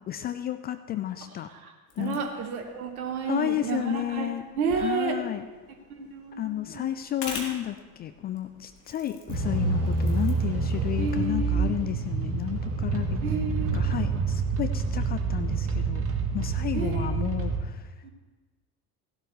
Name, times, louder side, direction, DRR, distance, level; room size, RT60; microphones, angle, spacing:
voice 1, 0.1-1.5 2.0-2.2 3.2-4.4 4.7-5.5 6.4-13.2 13.6-16.0 16.3-17.9, left 12 dB, 25° left, 10 dB, 0.3 m, -32 dB
voice 2, 1.5-5.2 5.9-6.9 11.0-11.8 13.2-13.8 16.7-17.2 18.0-18.1, right 5 dB, 70° right, 5 dB, 1.2 m, -31 dB
sound 1, 1.9-11.5, left 4 dB, 40° left, 2.6 m, -46 dB
sound 2, 9.3-17.6, right 4 dB, 30° right, 1.8 m, -27 dB
16.0 x 12.0 x 3.2 m, 1.3 s
figure-of-eight pair, 65°, 45 cm